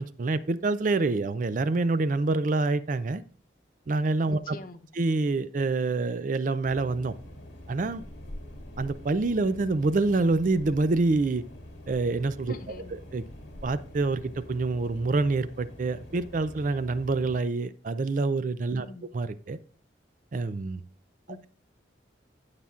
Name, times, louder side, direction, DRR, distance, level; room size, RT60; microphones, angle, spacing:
voice 1, 0.0-3.2 3.9-4.6 5.0-7.1 7.7-8.0 8.8-11.4 11.9-12.8 13.1-13.2 13.6-18.9 19.1-19.6 20.3-20.8, right 3 dB, 45° right, 0.4 m, -26 dB
voice 2, 4.3-4.8 12.5-13.0 18.8-19.1 21.3-21.5, left 1 dB, 50° left, 0.7 m, -43 dB
sound 1, 6.6-17.4, left 1 dB, 70° left, 2.0 m, -45 dB
16.5 x 5.7 x 2.4 m
head